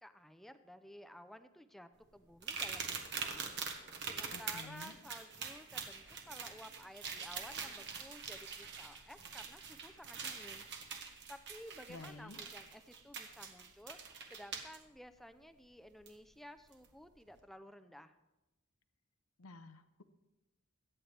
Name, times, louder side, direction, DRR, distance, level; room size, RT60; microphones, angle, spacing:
voice 1, 0.0-10.7 11.3-18.1, equal, ahead, 9 dB, 0.5 m, -54 dB
sound 1, 2.4-14.8 16.1-16.2 16.7-16.9, right 5 dB, 55° right, 1.4 m, -44 dB
voice 2, 4.3-5.0 11.9-12.4 19.4-20.0, left 2 dB, 80° left, 10 dB, 0.8 m, -51 dB
23.0 x 8.7 x 3.4 m, 1.0 s
head